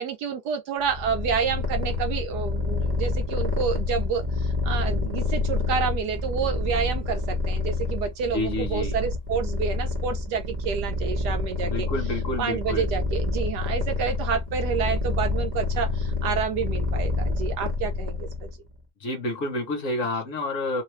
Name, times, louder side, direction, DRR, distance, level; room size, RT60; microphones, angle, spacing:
voice 1, 0.0-11.9 12.4-18.5, right 6 dB, 70° right, 1.1 m, -29 dB
Purr, 0.8-18.6, left 3 dB, 35° right, 0.8 m, -28 dB
voice 2, 8.3-9.0 11.6-12.9 19.0-20.8, left 2 dB, 55° left, 1.0 m, -29 dB
3.1 x 2.2 x 3.0 m
omnidirectional pair, 2.0 m